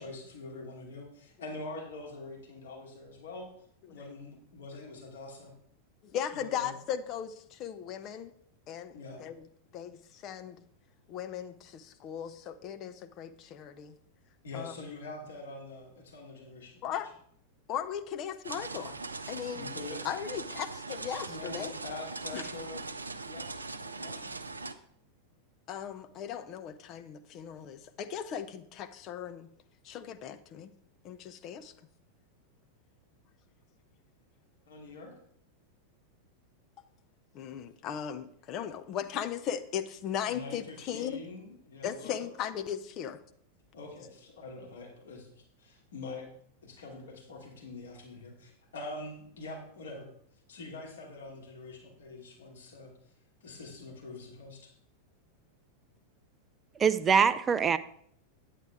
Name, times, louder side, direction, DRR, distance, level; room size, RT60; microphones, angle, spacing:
voice 1, 0.0-3.5 3.9-5.5 6.3-6.7 8.9-9.2 14.4-17.0 19.5-20.0 21.3-22.9 23.2-23.5 23.8-24.3 34.7-35.1 40.3-42.3 43.7-46.3 46.6-50.1 50.5-52.9 53.4-54.7, left 3 dB, 65° left, -2 dB, 2.5 m, -44 dB
voice 2, 6.0-8.3 8.7-9.3 9.7-10.6 11.1-14.0 14.5-14.7 16.8-17.1 17.7-19.0 19.3-19.7 20.0-21.8 22.3-22.4 25.7-29.5 29.8-30.7 31.0-31.7 37.3-41.2 41.8-43.2, left 9 dB, 35° left, 9 dB, 0.6 m, -37 dB
sound 1, 18.4-24.7, right 3 dB, 80° right, 0.5 m, -40 dB
voice 3, 56.8-57.8, right 6 dB, 20° right, 14 dB, 0.4 m, -23 dB
9.3 x 8.3 x 3.5 m, 0.65 s
figure-of-eight pair, 90°, 0 cm